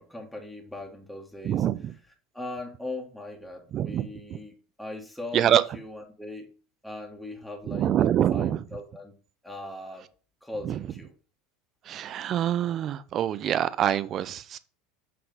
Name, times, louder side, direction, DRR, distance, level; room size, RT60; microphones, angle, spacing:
voice 1, 0.0-1.6 2.3-6.5 6.8-7.9 8.3-9.1 9.4-10.1 10.4-11.1, left 2 dB, ahead, 1.6 m, -39 dB
voice 2, 1.4-1.9 3.7-4.1 4.3-4.4 5.3-5.6 7.7-8.6 10.6-10.8 11.9-14.6, right 10 dB, 40° right, 0.6 m, -25 dB
7.5 x 4.0 x 5.3 m
figure-of-eight pair, 75°, 0 cm